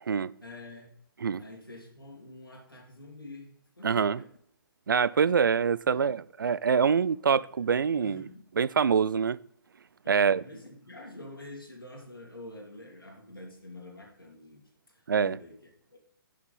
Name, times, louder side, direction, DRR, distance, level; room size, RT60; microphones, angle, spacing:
voice 1, 0.4-1.0 1.4-4.3 5.9-6.1 8.0-8.4 10.0-15.6 15.9-16.0, left 2 dB, 85° left, 2.7 m, -47 dB
voice 2, 3.8-4.2 4.9-8.3 8.6-9.4 10.1-10.4 15.1-15.4, right 6 dB, 65° right, 0.4 m, -25 dB
6.8 x 6.4 x 5.4 m
figure-of-eight pair, 130°, 12 cm